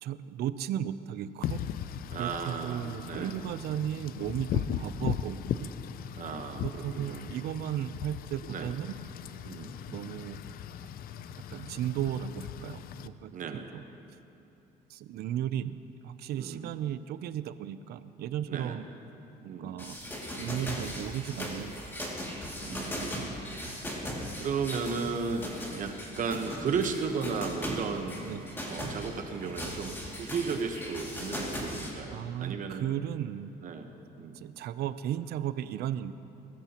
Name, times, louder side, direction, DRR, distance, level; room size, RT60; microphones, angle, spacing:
voice 1, 0.0-1.6 2.2-5.7 6.6-8.9 9.9-10.4 11.5-13.8 14.9-15.8 16.0-18.8 19.4-20.0 20.4-21.7 28.3-28.5 32.1-33.5 34.3-36.1, right 10 dB, 70° right, 13 dB, 0.5 m, -35 dB
Wind / Rain, 1.4-13.1, left 10 dB, 60° left, 0.5 m, -38 dB
voice 2, 2.1-3.4 6.1-7.3 8.5-8.7 9.4-9.7 13.3-13.7 16.3-16.7 18.5-18.8 19.5-19.7 22.6-23.7 24.3-28.3 28.6-32.9 33.6-33.9 34.2-34.4, right 5 dB, 50° right, 5 dB, 1.1 m, -35 dB
sound 1, 19.8-31.9, equal, 15° left, 2.4 m, -38 dB
21.0 x 14.0 x 3.0 m, 2.9 s
cardioid pair, 110°, 17 cm